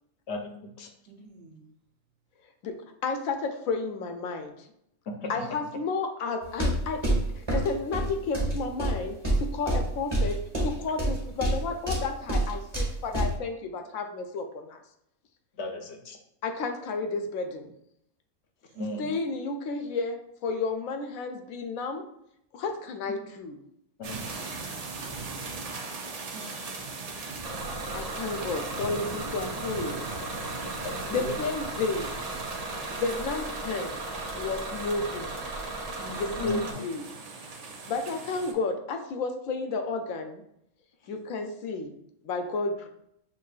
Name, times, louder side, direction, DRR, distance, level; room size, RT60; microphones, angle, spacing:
voice 1, 0.3-0.9 5.1-5.4 15.6-16.2 18.7-19.1 24.0-24.3 30.8-31.4 36.4-36.8, left 2 dB, 65° left, 4 dB, 0.7 m, -36 dB
voice 2, 1.1-1.7 18.7-19.1 26.1-26.9 35.9-36.7, right 2 dB, 65° right, 2 dB, 1.0 m, -46 dB
voice 3, 3.0-4.7 5.3-7.0 7.3-14.8 16.4-17.7 19.0-22.0 22.5-23.6 27.9-30.2 31.1-32.1 32.9-34.0 34.3-35.3 36.2-37.0 37.9-40.4 41.1-41.9 42.2-42.9, left 3 dB, 90° left, 5 dB, 1.0 m, -32 dB
sound 1, 6.4-13.4, right 1 dB, 20° right, 1.3 m, -27 dB
sound 2, 24.0-38.5, right 4 dB, 85° right, 0.3 m, -39 dB
Bus / Engine, 27.4-36.7, right 2 dB, 35° right, 0.7 m, -37 dB
6.1 x 2.7 x 2.3 m, 0.75 s
omnidirectional pair, 1.4 m